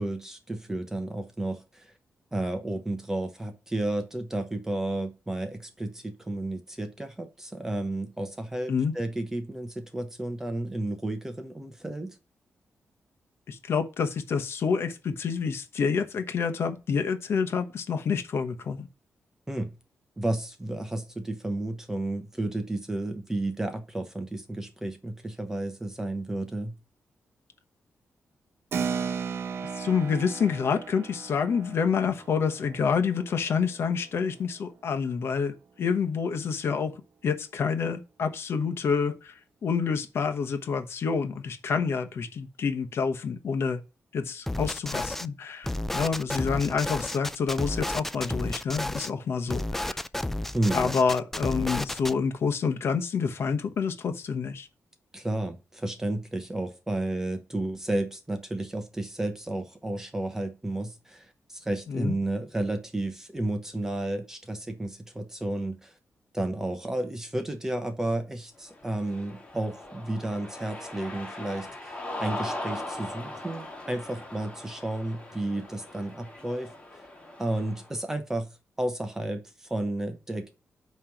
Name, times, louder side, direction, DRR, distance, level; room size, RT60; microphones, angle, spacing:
voice 1, 0.0-1.9 2.3-12.2 19.5-19.7 20.2-26.8 50.5-50.9 55.1-65.9 66.3-77.0 77.4-78.5 78.8-80.5, right 1 dB, 10° right, 0.9 m, -32 dB
voice 2, 13.5-18.9 29.7-39.3 39.6-43.8 44.1-50.0 50.7-54.7 61.9-62.1, left 6 dB, 65° left, 1.0 m, -28 dB
Keyboard (musical), 28.7-34.7, right 6 dB, 60° right, 0.8 m, -36 dB
sound 1, 44.5-45.3 45.6-49.1 49.5-52.1, left 1 dB, 5° left, 0.3 m, -32 dB
Cheering, 68.7-77.9, left 1 dB, 20° left, 1.9 m, -40 dB
8.9 x 3.2 x 5.9 m
wide cardioid pair, 150°, 5 cm